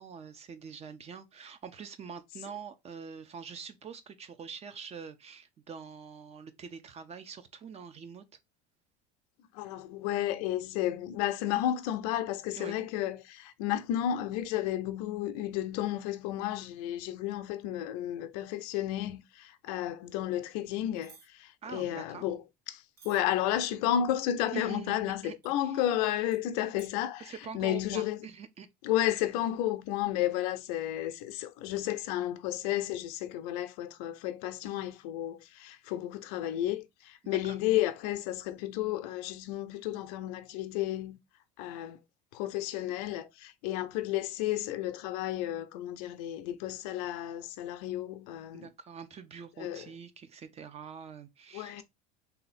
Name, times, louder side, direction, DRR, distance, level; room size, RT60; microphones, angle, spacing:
voice 1, 0.0-8.2 12.5-12.8 21.6-22.2 24.5-25.3 25.6-25.8 27.2-28.7 37.2-37.6 48.5-51.8, right 6 dB, 30° right, 0.7 m, -44 dB
voice 2, 9.5-22.4 22.7-28.2 28.8-41.2 41.6-42.0 42.3-48.7 49.6-49.9 51.5-51.8, left 12 dB, 75° left, 0.6 m, -32 dB
sound 1, 21.0-21.3 23.0-23.2 25.4-25.5 26.3-26.4 26.8-26.9, right 6 dB, 50° right, 1.1 m, -55 dB
3.5 x 2.8 x 4.0 m
supercardioid pair, 110°, 20 cm